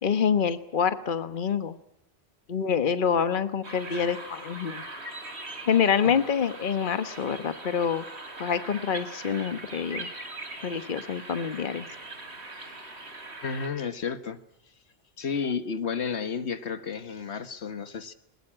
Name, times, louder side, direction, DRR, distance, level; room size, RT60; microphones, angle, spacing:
voice 1, 0.0-1.8 2.5-4.8 5.7-8.0 8.4-10.1 10.6-11.9, left 7 dB, 50° left, 1.3 m, -26 dB
sound 1, 3.6-13.7, right 2 dB, 80° right, 3.5 m, -41 dB
voice 2, 13.4-14.4 15.2-18.1, left 6 dB, 80° left, 1.6 m, -32 dB
21.5 x 21.0 x 8.9 m
omnidirectional pair, 1.1 m